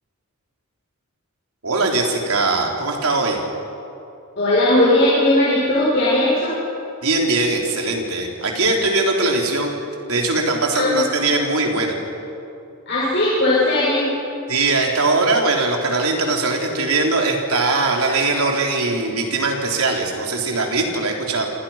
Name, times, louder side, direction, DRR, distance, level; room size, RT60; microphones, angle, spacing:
voice 1, 1.6-3.4 7.0-9.7 10.1-11.9 14.5-21.5, right 3 dB, 75° right, 0 dB, 4.1 m, -20 dB
voice 2, 4.4-6.5 10.7-11.0 12.9-14.1, left 1 dB, 50° left, -8 dB, 7.3 m, -17 dB
28.0 x 27.5 x 6.0 m, 2.7 s
head